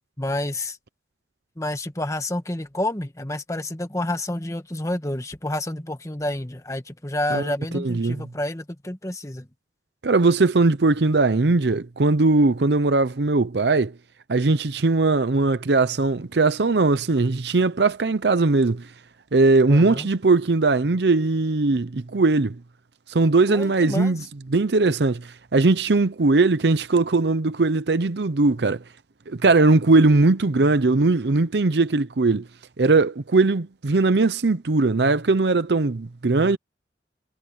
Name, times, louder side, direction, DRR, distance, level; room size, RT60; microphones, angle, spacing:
voice 1, 0.2-0.8 1.6-9.5 19.7-20.1 23.5-24.2, left 1 dB, 20° left, 1.5 m, -29 dB
voice 2, 7.3-8.3 10.0-13.9 14.3-18.9 19.3-22.6 23.1-24.2 24.5-28.8 29.3-32.5 32.8-36.6, right 3 dB, 70° right, 0.7 m, -20 dB
head